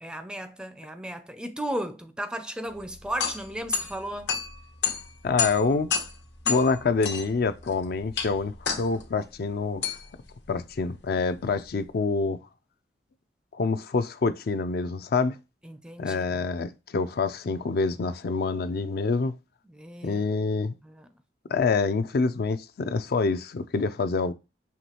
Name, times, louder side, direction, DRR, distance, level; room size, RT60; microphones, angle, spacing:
voice 1, 0.0-4.3 15.6-16.5 19.7-20.3 20.8-21.1, right 1 dB, 5° right, 0.4 m, -35 dB
sound 1, 2.7-11.9, left 6 dB, 75° left, 1.1 m, -33 dB
voice 2, 5.2-5.9 6.5-9.8 10.5-12.4 13.5-15.4 16.0-19.3 20.0-20.7 21.5-24.3, left 4 dB, 60° left, 0.4 m, -26 dB
5.7 x 3.0 x 2.9 m
head